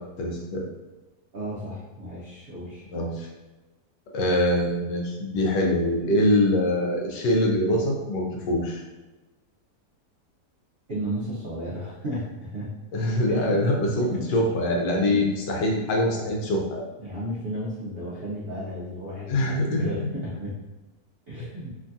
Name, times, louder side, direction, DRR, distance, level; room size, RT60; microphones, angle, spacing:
voice 1, 0.2-0.6 2.9-3.3 4.1-8.8 12.9-16.8 19.3-20.1, left 1 dB, 90° left, 0 dB, 1.2 m, -24 dB
voice 2, 1.3-2.8 10.9-12.7 13.3-13.6 14.1-14.2 14.9-15.3 17.0-20.5 21.3-21.7, equal, 70° right, -8 dB, 0.5 m, -34 dB
3.1 x 2.6 x 2.3 m, 1.1 s
omnidirectional pair, 1.8 m